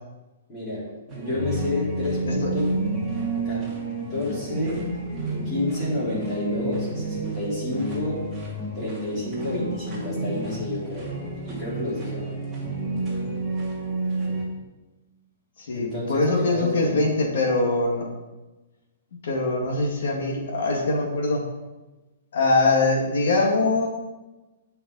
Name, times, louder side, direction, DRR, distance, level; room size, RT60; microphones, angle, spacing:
voice 1, 0.5-2.8 3.4-3.7 4.1-4.8 5.4-8.3 8.7-11.1 11.4-12.4 15.7-17.0, left 1 dB, 15° left, -9 dB, 4.2 m, -30 dB
sound 1, 1.1-14.4, right 2 dB, 5° right, 2.4 m, -30 dB
voice 2, 6.5-6.9 13.0-13.2 15.6-18.1 19.2-21.4 22.3-23.9, left 2 dB, 65° left, -1 dB, 2.2 m, -23 dB
17.0 x 5.7 x 4.1 m, 1.1 s
hypercardioid pair, 175°, 0 cm